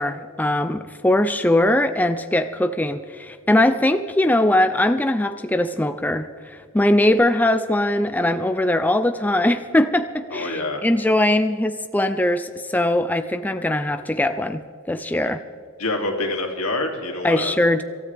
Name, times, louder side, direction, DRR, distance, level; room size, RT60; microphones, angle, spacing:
voice 1, 0.0-15.4 17.2-17.8, left 1 dB, 10° left, 9 dB, 0.4 m, -21 dB
voice 2, 10.3-10.8 15.2-15.3 15.8-17.5, left 2 dB, 85° left, 2 dB, 2.6 m, -26 dB
26.0 x 13.5 x 3.4 m, 2.2 s
head